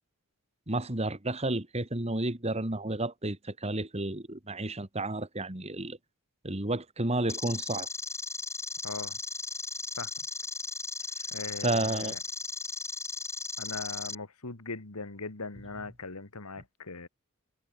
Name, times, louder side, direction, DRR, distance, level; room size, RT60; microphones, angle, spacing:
voice 1, 0.7-6.0 6.4-7.9 11.6-12.1, right 2 dB, 30° right, 2.1 m, -31 dB
sound 1, 7.3-14.1, left 4 dB, 15° left, 3.3 m, -36 dB
voice 2, 8.8-9.2 10.0-10.1 11.3-12.2 13.6-17.1, left 3 dB, 90° left, 2.1 m, -40 dB
head